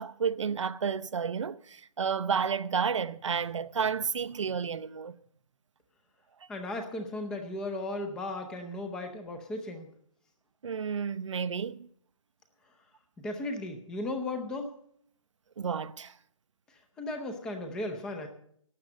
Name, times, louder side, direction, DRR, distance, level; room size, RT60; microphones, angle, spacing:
voice 1, 0.0-5.2 10.6-11.9 15.6-16.1, right 6 dB, 60° right, 0.6 m, -31 dB
voice 2, 6.5-9.9 13.2-14.7 17.0-18.3, left 2 dB, 5° left, 0.6 m, -36 dB
12.0 x 7.9 x 8.6 m
hypercardioid pair, 165°, 18 cm